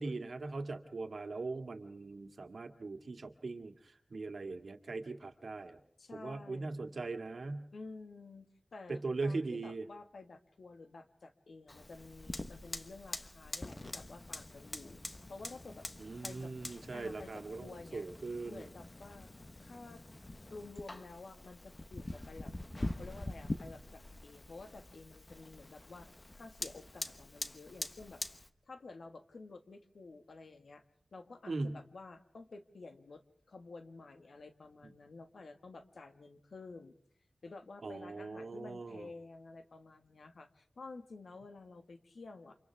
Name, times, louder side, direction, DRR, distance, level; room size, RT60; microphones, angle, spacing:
voice 1, 0.0-5.8 6.1-7.7 8.9-9.9 16.0-18.6 31.5-31.8 37.8-39.1, right 3 dB, 75° right, 6 dB, 2.0 m, -40 dB
voice 2, 6.0-6.9 7.7-15.0 15.3-15.9 16.2-16.5 16.9-18.1 18.4-19.3 19.6-20.0 20.5-22.5 23.0-26.1 26.4-28.2 28.7-30.8 31.1-37.0 37.4-42.6, left 3 dB, 90° left, 8 dB, 1.7 m, -51 dB
Fire, 11.7-28.5, left 2 dB, 35° left, 1.2 m, -45 dB
29.0 x 27.0 x 3.5 m, 0.65 s
wide cardioid pair, 70°, 0 cm